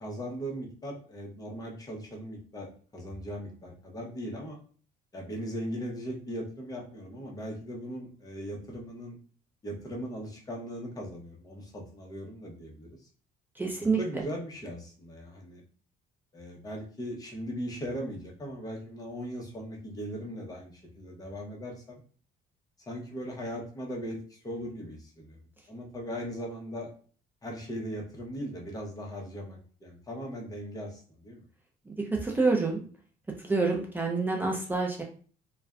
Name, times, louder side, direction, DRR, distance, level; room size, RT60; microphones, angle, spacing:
voice 1, 0.0-4.6 5.1-9.2 9.6-13.0 13.8-15.6 16.3-22.0 22.9-25.4 25.7-26.9 27.4-31.4, equal, 20° left, -1 dB, 0.8 m, -39 dB
voice 2, 13.6-14.0 31.9-32.8 33.4-35.0, right 3 dB, 10° right, -1 dB, 0.4 m, -27 dB
2.4 x 2.2 x 2.3 m, 0.43 s
cardioid pair, 110°, 17 cm